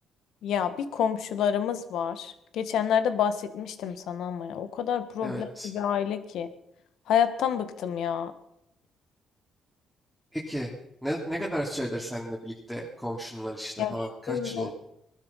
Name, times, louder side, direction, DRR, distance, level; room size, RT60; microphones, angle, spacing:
voice 1, 0.4-6.5 7.1-8.3 13.8-14.7, left 8 dB, 80° left, 11 dB, 1.6 m, -28 dB
voice 2, 5.2-5.7 10.3-10.7 11.0-14.7, equal, ahead, -3 dB, 3.1 m, -33 dB
20.0 x 12.5 x 5.7 m, 0.80 s
cardioid pair, 90°, 0 cm